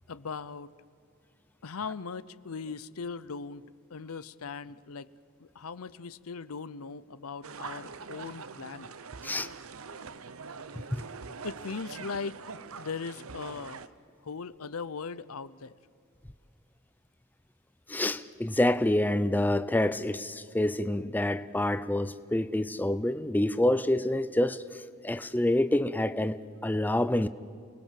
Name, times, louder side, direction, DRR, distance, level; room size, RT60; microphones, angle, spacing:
voice 1, 0.1-0.7 1.6-3.6 3.9-5.1 5.4-8.9 11.4-12.4 12.8-13.8 14.2-15.7, left 5 dB, 85° left, 0.7 m, -39 dB
sound 1, 7.4-13.9, right 5 dB, 75° right, 0.9 m, -43 dB
voice 2, 17.9-24.6 25.0-27.3, left 1 dB, 10° left, 0.5 m, -27 dB
28.5 x 20.5 x 7.6 m
head